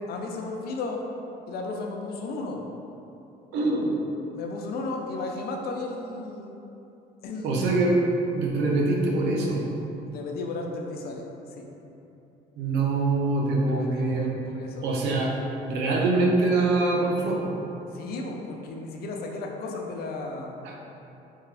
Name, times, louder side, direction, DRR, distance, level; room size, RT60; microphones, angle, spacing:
voice 1, 0.1-1.1 1.5-2.7 4.3-6.5 7.2-7.8 10.1-11.2 11.6-11.7 13.7-14.9 17.9-20.6, left 3 dB, 65° left, 1 dB, 0.6 m, -34 dB
voice 2, 3.5-3.9 7.4-8.0 8.3-9.6 12.6-14.3 14.8-15.3 15.6-17.5 20.6-20.7, right 2 dB, 85° right, -1 dB, 0.7 m, -24 dB
3.5 x 3.3 x 3.3 m, 2.9 s
cardioid pair, 110°, 17 cm